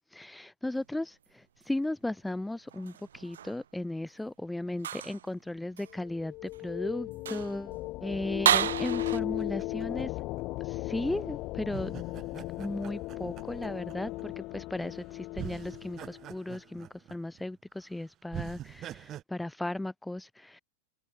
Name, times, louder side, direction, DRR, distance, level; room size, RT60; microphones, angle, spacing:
voice 1, 0.1-7.7 8.0-10.1 10.6-11.9 12.6-20.6, left 1 dB, 5° left, 0.3 m, -36 dB
sound 1, 2.7-3.6 4.8-5.3 5.8-5.9 6.5-6.6 7.1-7.6 8.4-9.2, right 10 dB, 65° right, 0.5 m, -30 dB
sound 2, 5.9-16.4, left 20 dB, 40° left, 0.6 m, -37 dB
sound 3, 8.8-10.8 11.7-14.2 14.8-15.0 15.3-17.4 17.8-17.9 18.3-19.2, right 12 dB, 30° right, 1.2 m, -44 dB
figure-of-eight pair, 90°, 0 cm